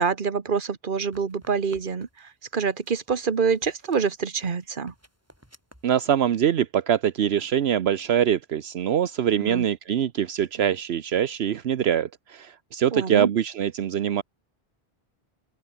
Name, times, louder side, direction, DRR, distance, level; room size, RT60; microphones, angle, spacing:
voice 1, 0.0-4.9 9.4-9.6 12.9-13.3, right 5 dB, 55° right, 1.5 m, -26 dB
sound 1, 0.9-2.3 2.8-5.9, equal, 15° right, 8.1 m, -54 dB
voice 2, 5.8-14.2, right 9 dB, 75° right, 1.0 m, -24 dB
open air
omnidirectional pair, 1.1 m